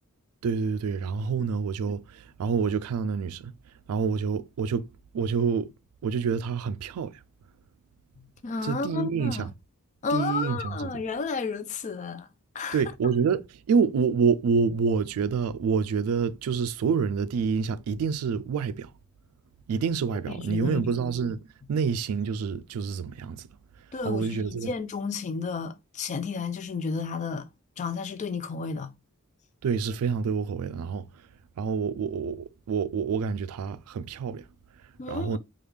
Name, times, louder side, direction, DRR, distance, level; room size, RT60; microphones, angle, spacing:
voice 1, 0.4-3.5 3.9-4.9 5.1-5.7 6.0-7.2 8.6-9.5 10.1-10.9 12.7-18.9 19.7-23.5 24.0-24.7 29.6-31.0 31.6-34.4 35.1-35.4, right 5 dB, 75° right, 0.3 m, -27 dB
voice 2, 8.2-9.5 10.0-12.3 12.5-12.8 20.3-20.9 23.9-27.5 27.8-28.9 35.0-35.4, left 4 dB, 35° left, 0.3 m, -32 dB
3.4 x 2.3 x 3.2 m
head